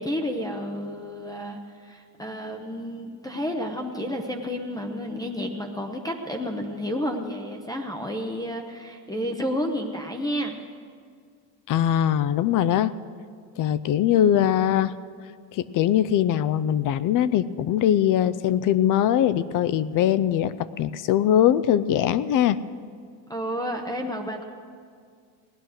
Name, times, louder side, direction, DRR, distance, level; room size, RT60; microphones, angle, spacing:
voice 1, 0.0-10.6 23.3-24.4, equal, 10° left, 4 dB, 0.7 m, -31 dB
voice 2, 11.7-12.9 13.6-14.9 15.5-22.6, left 10 dB, 45° left, 16 dB, 0.5 m, -21 dB
17.5 x 11.0 x 6.4 m, 2.1 s
cardioid pair, 145°, 47 cm